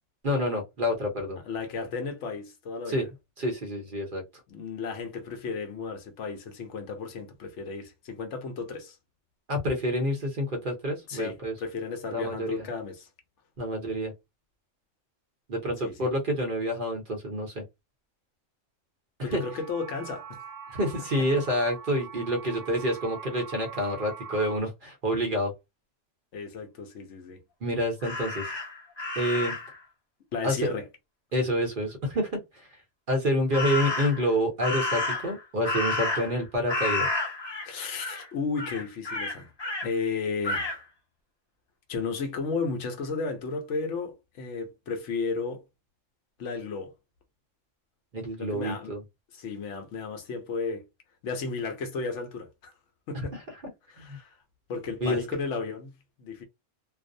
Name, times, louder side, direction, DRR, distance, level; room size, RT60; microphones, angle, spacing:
voice 1, 0.2-1.4 2.9-3.1 3.4-4.2 9.5-11.5 12.1-12.6 13.6-14.1 15.5-17.6 19.2-19.4 20.7-25.5 27.6-28.5 29.2-29.6 30.4-30.5 31.3-32.7 33.1-37.1 48.1-49.0 54.1-54.2 55.0-55.2, equal, 50° right, 0.8 m, -28 dB
voice 2, 1.4-3.0 4.5-9.0 11.1-13.1 15.8-16.1 19.2-20.4 26.3-27.4 30.3-30.9 37.6-39.5 39.8-40.8 41.9-45.6 46.4-46.9 48.4-48.9 49.3-50.9 51.2-52.7 53.1-53.4 53.9-54.4 54.7-55.9 56.2-56.4, left 4 dB, 70° left, 0.9 m, -34 dB
sound 1, 19.3-24.6, right 6 dB, 80° right, 1.0 m, -43 dB
Crow, 28.0-29.8 33.5-34.3 34.6-36.4 36.7-37.7 38.0-38.2 38.6-39.9 40.4-40.8, left 2 dB, 25° left, 0.7 m, -30 dB
2.5 x 2.0 x 2.5 m
omnidirectional pair, 1.3 m